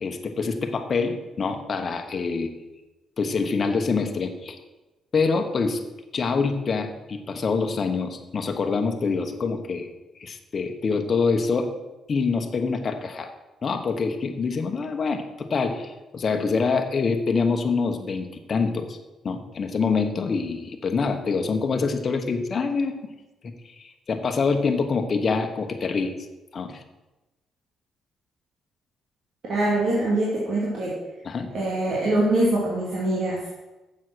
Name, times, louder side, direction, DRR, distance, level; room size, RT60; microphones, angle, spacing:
voice 1, 0.0-2.5 3.2-4.6 5.1-5.8 6.1-9.9 10.2-11.7 12.1-13.3 13.6-19.0 19.2-22.9 23.4-26.1 26.5-26.8 31.2-31.5, left 4 dB, 45° left, 5 dB, 1.2 m, -25 dB
voice 2, 29.5-31.0 31.5-33.5, right 1 dB, 60° right, -5 dB, 2.5 m, -23 dB
7.4 x 7.2 x 6.3 m, 1.1 s
cardioid pair, 90°, 0 cm